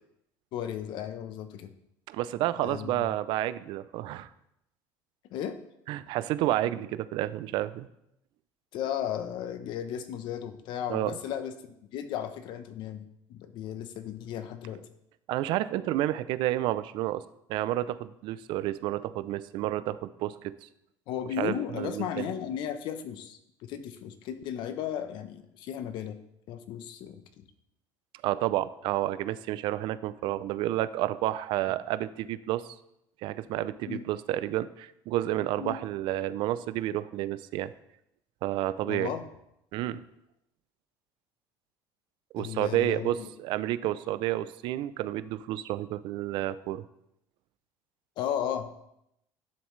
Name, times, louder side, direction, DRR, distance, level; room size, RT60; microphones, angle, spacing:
voice 1, 0.5-1.7 2.6-3.1 5.3-5.6 8.7-14.8 21.1-26.2 26.5-27.4 33.9-34.0 35.6-35.8 38.8-39.3 42.4-43.3 48.2-48.7, left 9 dB, 60° left, 9 dB, 0.9 m, -35 dB
voice 2, 2.1-4.3 5.9-7.9 10.9-11.1 15.3-17.2 17.5-20.5 21.4-22.3 28.2-32.6 33.2-37.7 38.4-39.1 39.7-40.0 42.3-46.8, right 14 dB, 65° right, 15 dB, 0.5 m, -30 dB
10.5 x 7.1 x 3.2 m, 0.80 s
cardioid pair, 135°, 9 cm